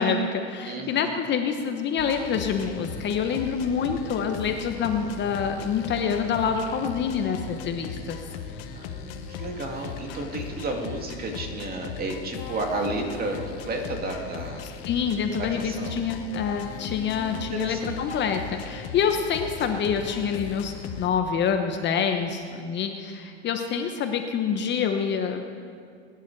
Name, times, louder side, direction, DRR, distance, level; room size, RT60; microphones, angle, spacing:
voice 1, 0.0-8.2 14.9-25.5, left 6 dB, 30° left, 5 dB, 1.0 m, -26 dB
voice 2, 0.6-1.1 8.2-8.4 8.7-14.7 15.5-16.0 17.5-18.0, right 2 dB, 25° right, 2 dB, 2.2 m, -32 dB
sound 1, 2.0-21.1, left 7 dB, 60° left, 1.4 m, -38 dB
21.0 x 10.5 x 4.7 m, 2.3 s
supercardioid pair, 120°, 34 cm